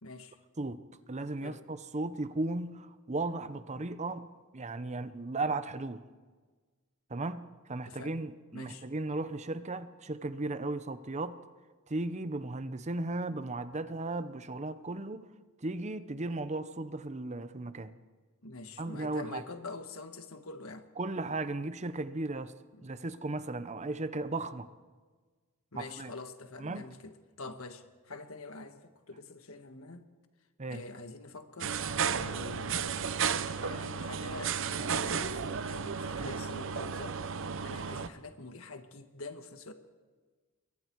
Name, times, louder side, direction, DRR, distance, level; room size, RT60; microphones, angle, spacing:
voice 1, 0.0-0.4 1.4-1.6 7.8-8.1 8.5-8.9 13.3-13.4 18.4-20.9 22.7-22.9 25.7-30.1 30.7-31.8 32.2-33.1 33.6-37.2 37.6-39.7, left 3 dB, 70° left, 1.6 m, -45 dB
voice 2, 1.1-6.0 7.1-11.4 11.9-15.3 15.6-17.9 18.8-19.4 21.0-22.5 22.8-24.7 25.8-26.1 26.6-26.9 30.6-30.8, right 2 dB, 30° right, 0.8 m, -36 dB
sound 1, 31.6-38.1, right 6 dB, 60° right, 0.8 m, -33 dB
28.0 x 22.5 x 4.7 m
head